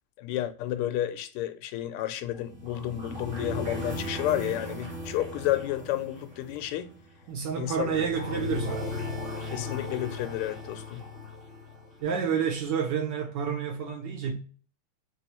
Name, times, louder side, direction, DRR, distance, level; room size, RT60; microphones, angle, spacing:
voice 1, 0.2-6.9 7.6-7.9 9.5-11.1, left 13 dB, 90° left, 1.5 m, -31 dB
sound 1, 2.2-12.3, left 2 dB, 35° right, 1.0 m, -37 dB
voice 2, 7.3-8.9 12.0-14.4, right 7 dB, 70° right, 1.1 m, -29 dB
3.5 x 3.0 x 2.9 m
omnidirectional pair, 2.4 m